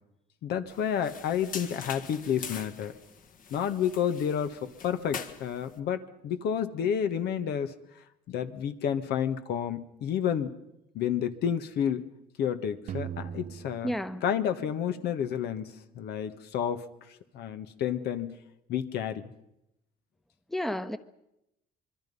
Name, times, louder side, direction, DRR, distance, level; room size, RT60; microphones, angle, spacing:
voice 1, 0.4-2.9 3.5-7.7 8.3-10.5 10.9-12.0 12.4-18.4 18.7-19.3, left 8 dB, 75° left, 1.6 m, -30 dB
sound 1, 0.7-5.8, left 6 dB, 55° left, 1.9 m, -43 dB
sound 2, 12.9-15.0, right 9 dB, 50° right, 0.9 m, -40 dB
voice 2, 13.8-14.2 20.5-21.0, equal, ahead, 1.0 m, -31 dB
26.0 x 23.0 x 5.5 m
cardioid pair, 110°, 17 cm